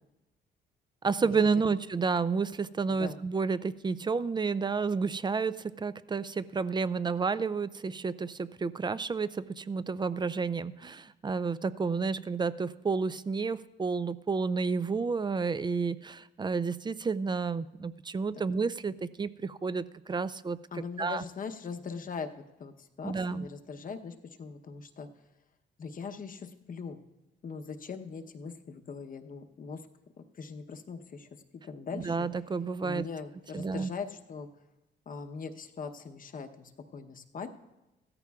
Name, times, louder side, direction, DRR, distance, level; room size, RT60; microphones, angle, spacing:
voice 1, 1.0-20.6 21.0-21.2 23.0-23.5 31.9-33.1 33.5-33.9, right 4 dB, 25° right, 17 dB, 0.4 m, -30 dB
voice 2, 20.7-25.1 25.8-27.0 27.4-29.8 30.2-32.3 32.8-34.5 35.1-37.5, left 5 dB, 45° left, 7 dB, 0.9 m, -41 dB
16.0 x 13.5 x 2.4 m, 1.0 s
cardioid pair, 90°, 20 cm